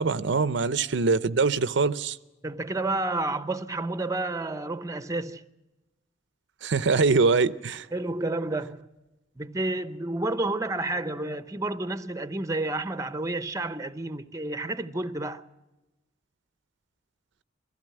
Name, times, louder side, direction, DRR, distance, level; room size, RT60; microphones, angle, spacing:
voice 1, 0.0-2.2 6.6-7.9, right 4 dB, 65° right, 0.6 m, -23 dB
voice 2, 2.4-5.4 7.9-8.9 9.4-15.4, right 2 dB, 15° right, 0.7 m, -30 dB
22.0 x 15.5 x 8.9 m
head